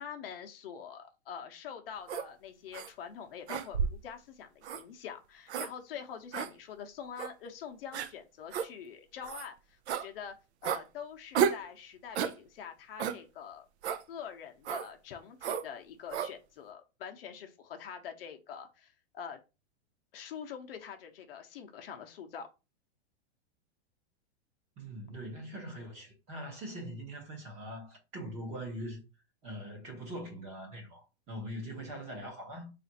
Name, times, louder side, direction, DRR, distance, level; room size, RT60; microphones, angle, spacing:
voice 1, 0.0-10.3 10.6-13.7 14.1-19.4 20.1-22.5, left 7 dB, 55° left, 0.7 m, -45 dB
sound 1, 2.1-2.3 2.7-2.9 3.5-4.1 4.6-4.8 5.5-5.7 6.3-6.5 7.2-7.3 7.9-8.1 8.5-8.7 9.2-9.5 9.9-10.1 10.6-10.8 11.3-11.6 12.1-12.4 13.0-13.2 13.8-14.0 14.6-14.9 15.4-15.7 16.1-16.3, right 8 dB, 75° right, 0.5 m, -32 dB
voice 2, 24.8-29.0 29.4-32.7, equal, 20° right, 0.9 m, -42 dB
3.5 x 2.5 x 4.0 m
supercardioid pair, 165°, 34 cm